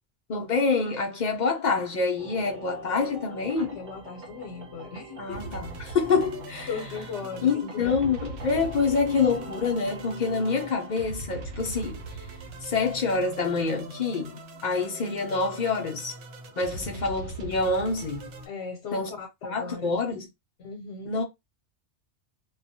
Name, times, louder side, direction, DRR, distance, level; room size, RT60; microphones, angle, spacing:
voice 1, 0.3-3.8 5.2-6.7 7.4-12.0 12.6-16.1 16.6-18.3 18.9-19.1 19.5-20.3 21.0-21.2, left 4 dB, 55° left, 0.5 m, -26 dB
sound 1, 2.2-10.9, right 3 dB, 50° right, 0.8 m, -45 dB
voice 2, 3.6-5.5 6.7-8.1 18.5-20.0 20.6-21.2, left 5 dB, 80° left, 0.9 m, -38 dB
sound 2, 5.3-18.5, right 2 dB, 85° right, 1.0 m, -41 dB
2.2 x 2.1 x 2.7 m
omnidirectional pair, 1.2 m